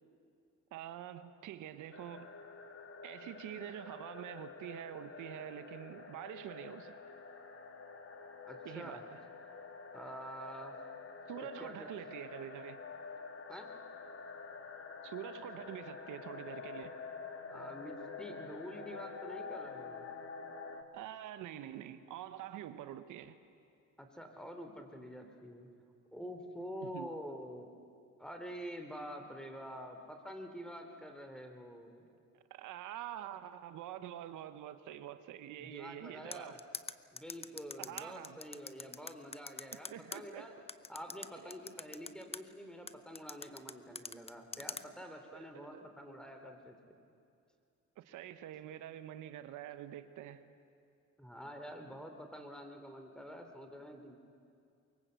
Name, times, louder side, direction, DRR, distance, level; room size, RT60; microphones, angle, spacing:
voice 1, 0.7-2.3 3.0-6.9 8.6-9.2 11.3-12.8 15.0-16.9 20.9-23.4 26.8-27.1 32.5-36.6 37.8-38.4 39.9-40.5 45.3-45.5 45.7-45.8 48.0-50.4, right 11 dB, 90° right, 11 dB, 1.0 m, -46 dB
sound 1, 1.9-20.8, left 4 dB, 45° left, 2.2 m, -48 dB
voice 2, 8.5-9.0 9.9-10.8 11.6-11.9 13.5-13.7 17.5-20.1 24.0-25.7 26.1-27.7 28.2-32.1 35.6-36.6 37.1-40.6 40.9-46.8 51.2-54.2, equal, 5° left, 5 dB, 3.1 m, -47 dB
sound 2, 36.3-40.2 40.7-42.4 42.9-44.8, left 4 dB, 20° left, 0.7 m, -43 dB
23.5 x 22.5 x 8.1 m, 2.5 s
cardioid pair, 90°, 30 cm